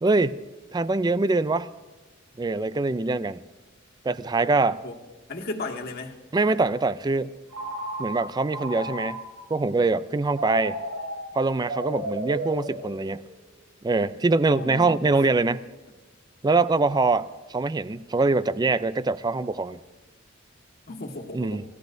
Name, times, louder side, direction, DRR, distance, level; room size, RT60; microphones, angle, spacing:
voice 1, 0.0-0.4 0.7-1.7 2.4-3.4 4.0-4.8 6.3-7.3 8.0-9.2 9.5-10.8 11.3-13.2 13.8-15.6 16.4-19.8 21.3-21.6, right 3 dB, 20° right, 15 dB, 0.4 m, -23 dB
voice 2, 5.3-6.2 14.6-15.2 20.9-21.6, left 2 dB, 50° left, 0 dB, 1.6 m, -35 dB
Telephone, 7.5-9.5 10.3-13.4, right 1 dB, 90° right, 3.1 m, -34 dB
28.0 x 16.5 x 2.7 m, 1.2 s
head